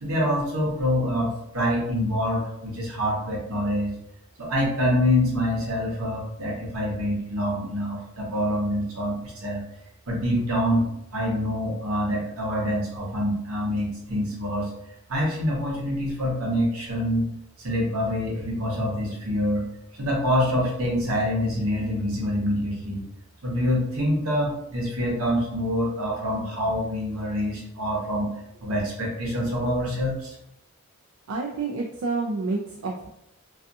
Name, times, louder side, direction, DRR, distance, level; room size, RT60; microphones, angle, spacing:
voice 1, 0.0-3.9 4.4-9.6 10.1-10.8 11.1-14.7 15.1-17.2 17.6-19.6 20.0-23.0 23.4-28.3 28.6-30.3, equal, 85° right, -2 dB, 0.9 m, -26 dB
voice 2, 31.3-33.1, right 3 dB, 70° right, 0 dB, 0.3 m, -29 dB
2.4 x 2.3 x 2.6 m, 0.78 s
head